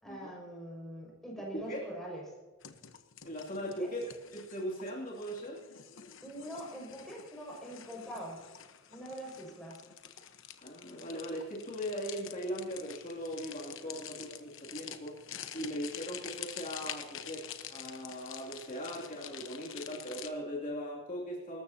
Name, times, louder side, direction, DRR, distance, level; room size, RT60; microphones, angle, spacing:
voice 1, 0.0-2.2 3.6-3.9 6.2-8.4 8.9-9.8 13.8-14.8, right 1 dB, ahead, -3 dB, 5.9 m, -44 dB
sound 1, 2.6-20.3, left 9 dB, 65° left, 1.1 m, -47 dB
voice 2, 3.2-4.1 4.3-5.6 10.6-21.6, equal, 40° left, -4 dB, 2.8 m, -39 dB
24.5 x 13.5 x 2.9 m, 1.3 s
head